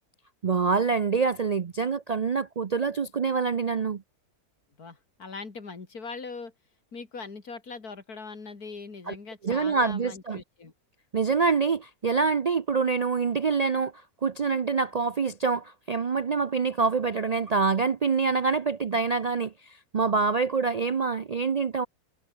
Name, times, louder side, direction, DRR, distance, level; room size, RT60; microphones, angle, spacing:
voice 1, 0.4-4.0 9.1-9.2 9.4-10.4 11.1-13.9 14.2-21.9, right 5 dB, 80° right, 0.3 m, -26 dB
voice 2, 4.8-6.5 6.9-10.7, left 4 dB, 80° left, 3.5 m, -41 dB
omnidirectional pair, 1.6 m